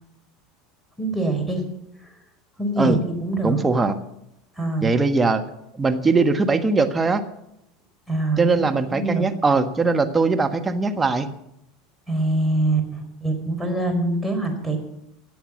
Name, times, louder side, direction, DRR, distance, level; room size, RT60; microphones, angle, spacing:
voice 1, 1.0-1.6 2.6-3.6 4.6-4.9 8.1-8.6 8.9-9.3 12.1-14.8, right 2 dB, ahead, 5 dB, 4.4 m, -24 dB
voice 2, 3.4-3.9 4.8-5.4 5.8-7.2 8.4-11.3, right 3 dB, 20° right, 6 dB, 1.4 m, -20 dB
17.0 x 8.1 x 7.4 m, 0.82 s
hypercardioid pair, 80°, 0 cm